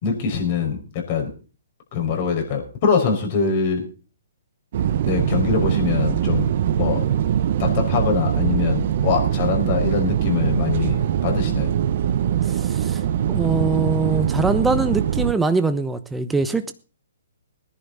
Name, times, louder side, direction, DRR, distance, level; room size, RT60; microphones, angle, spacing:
voice 1, 0.0-1.3 1.9-3.9 5.1-6.5 6.8-7.0 7.6-11.7, left 5 dB, 40° left, 5.3 m, -23 dB
sound 1, 4.7-15.3, right 10 dB, 50° right, 1.0 m, -22 dB
voice 2, 12.5-13.0 13.3-16.7, right 3 dB, 5° right, 0.9 m, -22 dB
19.5 x 10.5 x 4.1 m
hypercardioid pair, 135°, 0 cm